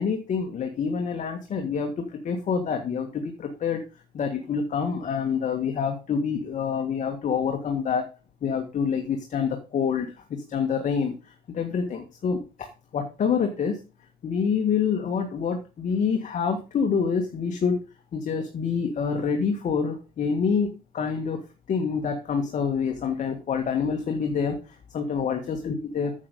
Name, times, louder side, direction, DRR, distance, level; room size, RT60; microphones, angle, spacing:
voice 1, 0.0-3.8 4.1-8.1 8.4-13.8 14.2-17.8 18.1-21.4 21.7-26.1, left 6 dB, 45° left, 5 dB, 1.7 m, -27 dB
8.5 x 7.8 x 5.3 m, 0.32 s
cardioid pair, 110°, 17 cm